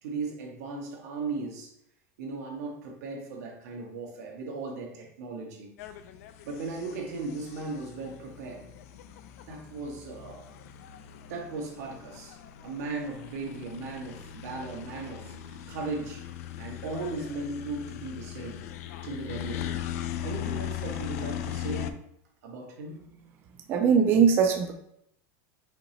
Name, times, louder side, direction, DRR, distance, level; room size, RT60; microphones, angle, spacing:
voice 1, 0.0-1.7 2.2-5.7 6.4-8.7 9.5-10.4 11.3-16.3 16.6-18.7 19.0-19.8 20.2-22.0 22.4-23.0, right 3 dB, 85° right, 0 dB, 1.3 m, -37 dB
sound 1, 5.8-21.9, left 11 dB, 70° left, 0.3 m, -39 dB
voice 2, 23.7-24.7, right 6 dB, 25° right, 4 dB, 0.3 m, -21 dB
5.1 x 2.9 x 2.9 m, 0.75 s
supercardioid pair, 175°, 9 cm